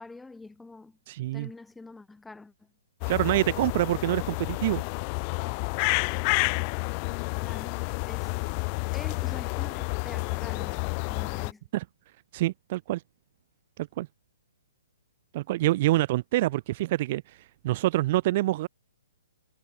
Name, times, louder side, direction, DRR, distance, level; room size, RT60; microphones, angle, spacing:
voice 1, 0.0-1.0 1.3-2.7 7.4-8.3 8.9-11.6, left 3 dB, 5° left, 4.3 m, -46 dB
voice 2, 1.1-1.5 3.1-4.8 11.7-11.8 12.3-13.0 13.8-14.1 15.3-18.7, right 16 dB, 40° right, 0.6 m, -26 dB
sound 1, 3.0-11.5, left 40 dB or more, 35° left, 0.8 m, -30 dB
figure-of-eight pair, 130°, 0 cm